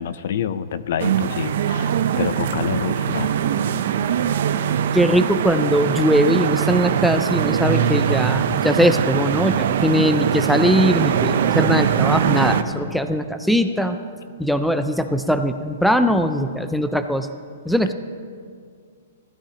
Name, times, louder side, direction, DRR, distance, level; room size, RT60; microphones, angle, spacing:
voice 1, 0.0-3.3, left 8 dB, 60° left, 15 dB, 0.5 m, -27 dB
sound 1, 1.0-12.6, right 8 dB, 60° right, 0.6 m, -21 dB
voice 2, 4.9-14.0 14.4-17.3 17.6-17.9, equal, ahead, 8 dB, 0.4 m, -20 dB
16.0 x 12.5 x 2.9 m, 2.1 s
hypercardioid pair, 155°, 0 cm